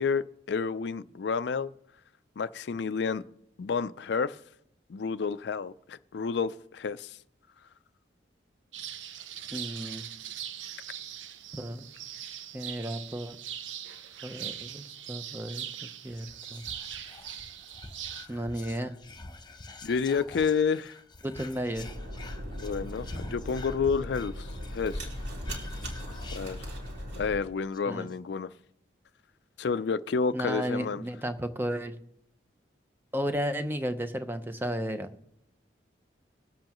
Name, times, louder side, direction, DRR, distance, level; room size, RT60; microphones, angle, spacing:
voice 1, 0.0-1.7 2.4-3.2 3.6-4.4 4.9-7.2 19.8-20.9 22.6-25.1 26.3-26.6 27.2-28.5 29.6-31.0, left 5 dB, 65° left, 0.4 m, -30 dB
sound 1, 8.7-18.3, right 10 dB, 90° right, 0.7 m, -41 dB
voice 2, 9.5-10.1 11.5-11.9 12.5-13.4 14.2-16.6 18.3-19.0 21.2-21.9 27.9-28.1 30.3-32.0 33.1-35.1, equal, 10° right, 0.7 m, -33 dB
Whispering, 16.1-27.1 27.4-27.5 27.7-28.2, left 3 dB, 25° left, 0.7 m, -47 dB
sound 2, 21.8-27.4, equal, 70° right, 2.8 m, -38 dB
21.0 x 7.7 x 3.0 m
head